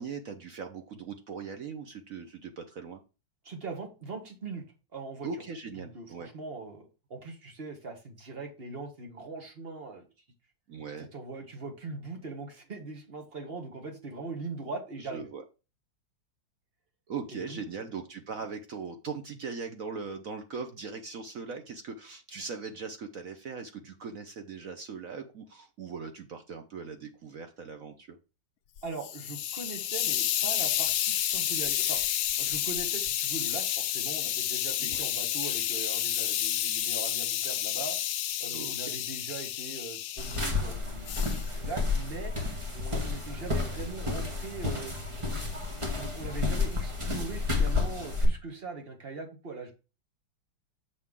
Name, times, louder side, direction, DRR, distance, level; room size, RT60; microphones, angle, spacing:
voice 1, 0.0-3.0 5.2-6.3 10.7-11.1 15.0-15.4 17.1-28.2 34.8-35.1 38.5-38.9, right 5 dB, 60° right, 6 dB, 0.9 m, -40 dB
voice 2, 3.4-4.6 4.9-5.3 5.8-10.1 11.0-15.3 17.3-17.6 28.8-32.0 32.4-38.0 38.4-42.3 42.7-45.0 46.0-49.7, right 3 dB, 35° right, 4 dB, 1.5 m, -41 dB
Hiss, 28.8-40.5 41.1-41.4, left 12 dB, 70° left, 0.9 m, -30 dB
sound 1, 40.2-48.2, left 3 dB, 20° right, 1.3 m, -31 dB
7.0 x 6.6 x 3.7 m, 0.31 s
omnidirectional pair, 2.1 m